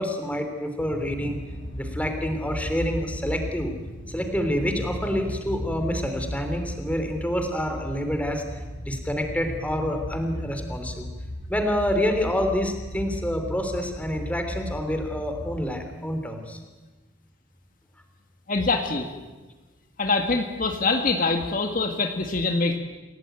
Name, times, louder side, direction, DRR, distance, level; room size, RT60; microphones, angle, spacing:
voice 1, 0.0-1.4 1.8-3.7 4.1-8.4 8.8-11.1 11.5-16.6, equal, 10° left, 5 dB, 3.3 m, -27 dB
sound 1, 0.8-15.6, equal, 80° left, 7.5 m, -36 dB
voice 2, 18.5-19.1 20.0-22.8, left 3 dB, 45° left, 4 dB, 2.0 m, -24 dB
28.5 x 18.0 x 9.2 m, 1.2 s
head